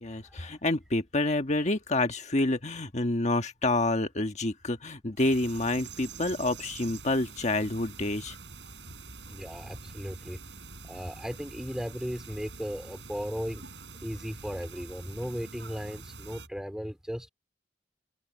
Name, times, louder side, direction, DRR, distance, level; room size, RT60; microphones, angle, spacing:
voice 1, 0.0-8.3, left 2 dB, 40° left, 1.4 m, -28 dB
sound 1, 5.2-16.5, right 4 dB, 80° right, 7.7 m, -46 dB
voice 2, 9.3-10.4 10.8-13.6 14.0-17.3, equal, 5° right, 3.8 m, -36 dB
head